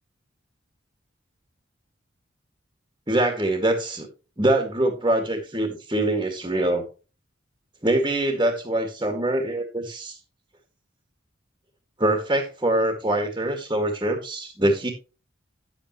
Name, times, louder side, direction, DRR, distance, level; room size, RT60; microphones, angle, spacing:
voice 1, 3.1-4.1 4.4-6.9 7.8-10.2 12.0-14.9, right 1 dB, 20° right, 3 dB, 1.9 m, -24 dB
10.5 x 8.4 x 3.0 m, 0.31 s
head